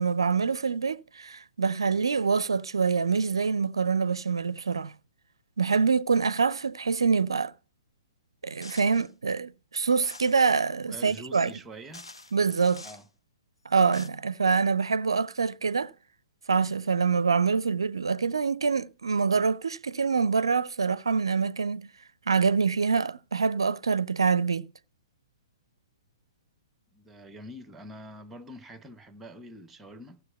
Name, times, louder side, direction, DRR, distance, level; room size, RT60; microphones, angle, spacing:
voice 1, 0.0-4.9 5.6-7.5 8.4-11.5 12.3-12.9 13.7-15.9 16.5-21.9 22.3-24.7, right 5 dB, 70° right, 0.5 m, -25 dB
sound 1, 8.6-9.1 10.0-10.5 11.5-11.6 11.9-13.1 13.7-14.1, left 3 dB, 75° left, 0.8 m, -47 dB
voice 2, 10.8-12.1 12.8-13.1 26.9-30.2, equal, 10° right, 0.9 m, -45 dB
15.0 x 7.5 x 5.6 m
figure-of-eight pair, 120°, 3 cm